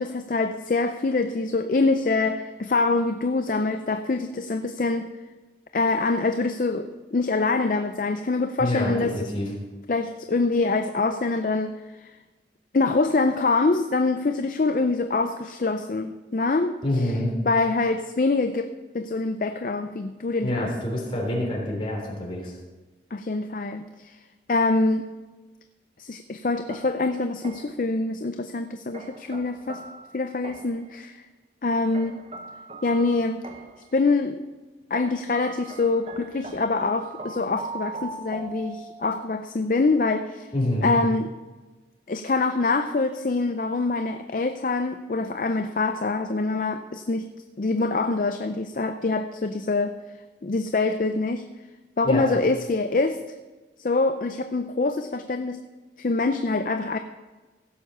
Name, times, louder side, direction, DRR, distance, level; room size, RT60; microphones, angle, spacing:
voice 1, 0.0-5.1 5.7-9.3 9.9-11.8 12.0-12.1 12.7-17.1 17.5-20.7 23.1-24.2 24.5-25.1 26.0-29.8 30.1-31.2 31.6-32.2 32.8-33.4 33.9-34.4 34.9-40.5 40.8-41.3 42.1-47.3 47.6-50.0 50.4-51.5 52.0-53.2 53.8-55.6 56.0-57.0, left 3 dB, 45° left, 8 dB, 0.5 m, -25 dB
voice 2, 8.6-9.5 16.8-17.3 20.4-22.5 40.5-40.9 52.0-52.2, left 1 dB, 30° left, -2 dB, 3.3 m, -26 dB
sound 1, 26.7-27.9 28.9-30.9 31.9-33.9 34.9-39.2, right 3 dB, 35° right, 0.8 m, -41 dB
16.0 x 7.1 x 5.6 m, 1.2 s
head